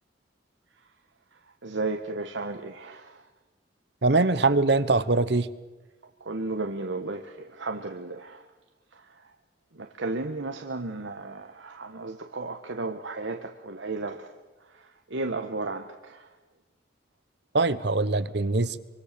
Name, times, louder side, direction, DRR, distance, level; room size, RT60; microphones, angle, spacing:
voice 1, 1.6-3.2 6.2-8.5 8.9-9.2 9.7-14.3 14.7-16.3, right 3 dB, 80° right, 5 dB, 1.3 m, -34 dB
voice 2, 4.0-5.5 17.5-18.8, right 3 dB, 65° right, 15 dB, 1.1 m, -22 dB
25.5 x 24.5 x 6.8 m, 1.1 s
head